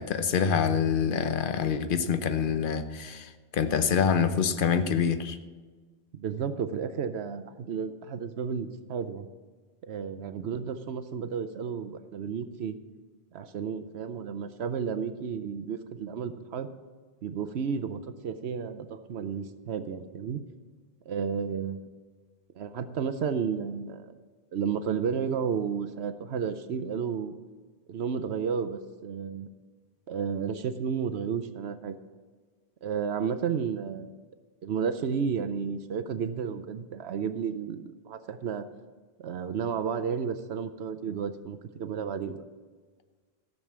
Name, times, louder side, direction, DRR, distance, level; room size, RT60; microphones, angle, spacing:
voice 1, 0.0-5.4, left 7 dB, 55° left, 10 dB, 0.9 m, -26 dB
voice 2, 6.1-9.3 9.8-12.8 13.3-16.7 17.2-20.4 21.1-21.9 22.6-24.2 24.5-27.4 27.9-29.5 30.1-32.0 32.8-34.1 34.6-38.7 39.2-42.4, right 6 dB, 75° right, 11 dB, 1.0 m, -32 dB
14.5 x 6.7 x 7.3 m, 1.4 s
omnidirectional pair, 1.1 m